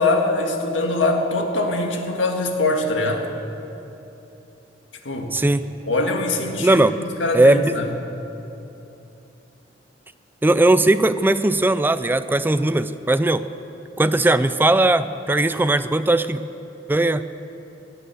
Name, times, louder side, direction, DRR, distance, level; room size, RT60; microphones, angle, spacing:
voice 1, 0.0-3.3 5.1-5.3 5.9-7.9, left 2 dB, 85° left, 3 dB, 1.8 m, -23 dB
voice 2, 5.3-5.7 6.6-7.0 7.3-7.8 10.4-13.4 14.0-16.4 16.9-17.2, right 2 dB, 10° right, 12 dB, 0.4 m, -18 dB
17.5 x 9.6 x 7.8 m, 2.9 s
head